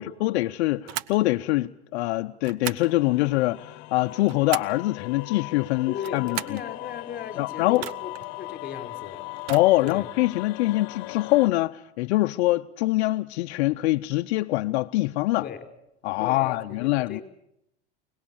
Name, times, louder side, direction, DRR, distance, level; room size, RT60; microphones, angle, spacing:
voice 1, 0.0-6.6 7.4-7.8 9.5-15.4 16.0-17.2, left 18 dB, 75° left, 0.8 m, -24 dB
sound 1, 0.9-1.2 2.4-2.9 4.0-4.8 5.9-6.7 7.7-8.3 9.4-10.0, right 13 dB, 55° right, 1.1 m, -36 dB
sound 2, 2.8-11.5, left 21 dB, 60° left, 1.3 m, -39 dB
voice 2, 5.9-9.2 9.8-10.1 15.4-15.6 16.2-17.2, left 7 dB, 25° left, 4.8 m, -37 dB
25.0 x 19.0 x 7.1 m
supercardioid pair, 110°, 33 cm